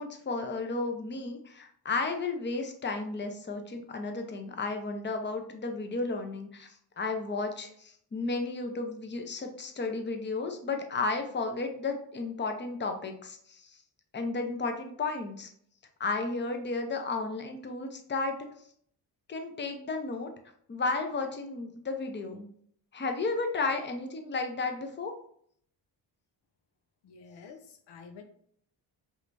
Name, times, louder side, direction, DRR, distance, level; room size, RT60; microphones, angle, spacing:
voice 1, 0.0-13.8 14.1-15.5 16.0-18.4 19.3-20.3 20.7-22.5 22.9-25.1, left 3 dB, 25° left, 5 dB, 0.7 m, -33 dB
voice 2, 27.0-28.2, left 5 dB, 75° left, 6 dB, 0.7 m, -49 dB
4.9 x 3.4 x 2.6 m, 0.64 s
cardioid pair, 90°, 42 cm